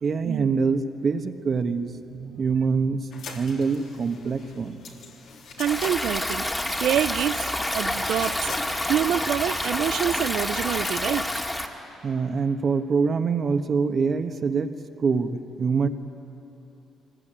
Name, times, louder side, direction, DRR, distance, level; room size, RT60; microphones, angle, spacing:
voice 1, 0.0-4.8 12.0-14.7 15.0-15.9, right 5 dB, 50° right, 7 dB, 1.3 m, -25 dB
sound 1, 3.1-11.0, left 4 dB, 80° left, 3.1 m, -44 dB
voice 2, 5.6-6.5 6.8-8.6 8.9-11.3, right 11 dB, 75° right, 16 dB, 0.5 m, -26 dB
Stream, 5.7-11.7, left 1 dB, 15° left, 2.0 m, -28 dB
23.5 x 20.5 x 9.0 m, 3.0 s
cardioid pair, 90°, 0 cm